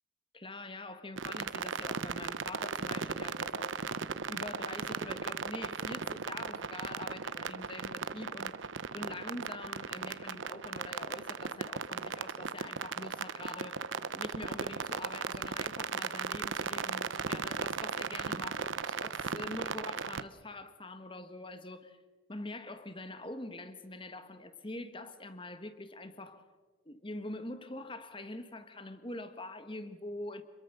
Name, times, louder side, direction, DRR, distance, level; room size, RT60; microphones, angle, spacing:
voice 1, 0.3-8.5 8.9-13.8 14.1-22.0 22.3-26.4 26.8-30.4, left 2 dB, 25° left, 1.6 m, -44 dB
sound 1, 1.2-20.2, right 5 dB, 75° right, 0.8 m, -37 dB
27.5 x 21.5 x 6.9 m
head